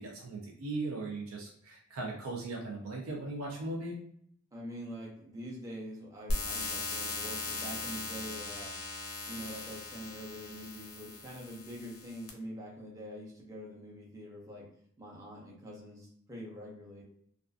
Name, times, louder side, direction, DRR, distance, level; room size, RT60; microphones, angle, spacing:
voice 1, 0.0-3.9, right 2 dB, 85° right, -1 dB, 0.5 m, -38 dB
voice 2, 4.5-8.7 9.2-14.7 15.0-17.0, equal, 15° right, -3 dB, 0.6 m, -45 dB
sound 1, 6.3-12.3, left 2 dB, 90° left, 0.6 m, -38 dB
2.4 x 2.4 x 2.4 m, 0.64 s
head